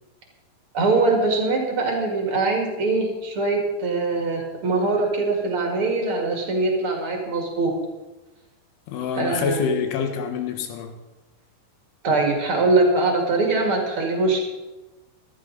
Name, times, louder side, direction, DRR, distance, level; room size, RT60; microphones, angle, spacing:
voice 1, 0.7-7.7 9.1-9.6 12.0-14.4, right 3 dB, 50° right, 1 dB, 1.6 m, -22 dB
voice 2, 8.9-10.9, left 6 dB, 75° left, 5 dB, 3.6 m, -26 dB
15.5 x 13.5 x 4.0 m, 1.1 s
omnidirectional pair, 5.9 m